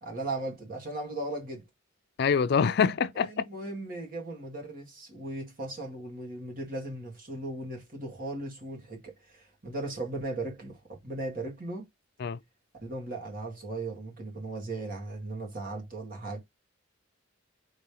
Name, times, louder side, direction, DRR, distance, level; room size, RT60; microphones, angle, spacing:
voice 1, 0.0-1.6 3.1-11.8 12.8-16.4, right 2 dB, 45° right, 1.6 m, -37 dB
voice 2, 2.2-3.5 12.2-12.4, left 6 dB, 55° left, 0.4 m, -25 dB
5.0 x 3.0 x 2.9 m
head